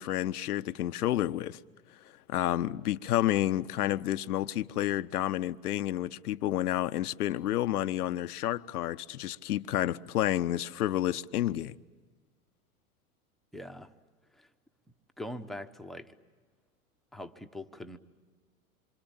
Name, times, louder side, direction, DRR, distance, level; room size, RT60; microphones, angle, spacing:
voice 1, 0.0-1.6 2.3-11.8, left 13 dB, 80° left, 0.8 m, -30 dB
voice 2, 13.5-13.9 14.3-14.5 15.2-16.1 17.1-18.0, left 1 dB, ahead, 1.0 m, -42 dB
27.0 x 25.5 x 8.8 m
hypercardioid pair, 105°, 44 cm